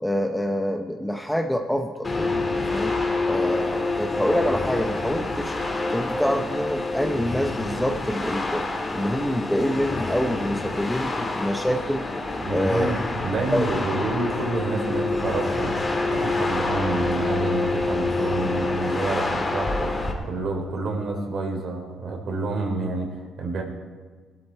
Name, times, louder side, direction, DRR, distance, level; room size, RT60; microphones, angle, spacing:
voice 1, 0.0-2.9 3.3-5.6 5.9-8.6 8.9-12.1 12.5-12.9 13.5-13.7, equal, ahead, 5 dB, 0.8 m, -26 dB
sound 1, 2.0-20.1, left 2 dB, 20° left, 2.5 m, -27 dB
voice 2, 12.4-23.6, right 3 dB, 50° right, 2 dB, 3.4 m, -29 dB
19.0 x 13.0 x 4.4 m, 1.5 s
cardioid pair, 130°, 0 cm